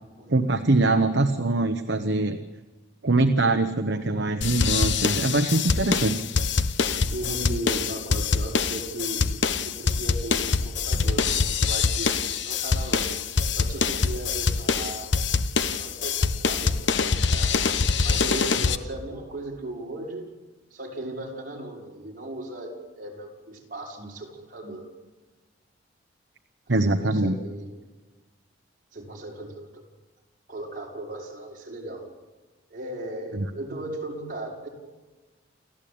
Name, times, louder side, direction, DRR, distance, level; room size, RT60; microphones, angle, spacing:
voice 1, 0.3-2.4 3.0-6.2 26.7-27.3 33.4-33.5, right 2 dB, 65° right, 7 dB, 1.1 m, -23 dB
sound 1, 4.4-18.8, left 4 dB, 65° left, 1.1 m, -24 dB
voice 2, 7.1-9.3 9.6-13.1 13.5-15.1 15.7-17.5 18.0-20.3 20.7-24.9 26.7-27.7 28.9-29.8 30.5-32.1 32.7-34.7, right 1 dB, 45° right, -2 dB, 5.8 m, -37 dB
29.0 x 14.0 x 8.8 m, 1.3 s
head